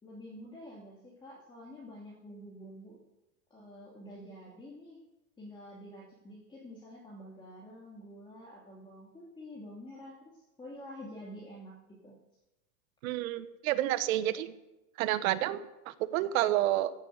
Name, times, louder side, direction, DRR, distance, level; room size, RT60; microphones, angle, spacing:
voice 1, 0.0-3.0 3.5-5.0 5.4-12.1, equal, 10° left, -4 dB, 2.6 m, -48 dB
voice 2, 13.0-14.5 15.0-16.9, right 14 dB, 65° right, 12 dB, 1.2 m, -29 dB
16.0 x 7.4 x 8.1 m, 0.99 s
supercardioid pair, 155°, 45 cm